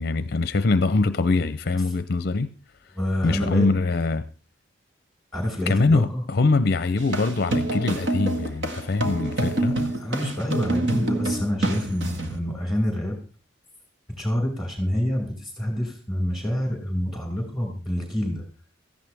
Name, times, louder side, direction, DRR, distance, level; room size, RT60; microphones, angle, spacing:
voice 1, 0.0-2.5 3.2-4.3 5.7-9.8, left 3 dB, 50° left, 0.6 m, -23 dB
voice 2, 2.9-3.7 5.3-6.2 9.7-13.2 14.2-18.4, left 1 dB, ahead, 5.6 m, -27 dB
sound 1, 7.0-12.4, right 2 dB, 60° right, 1.8 m, -27 dB
17.0 x 14.5 x 3.4 m
head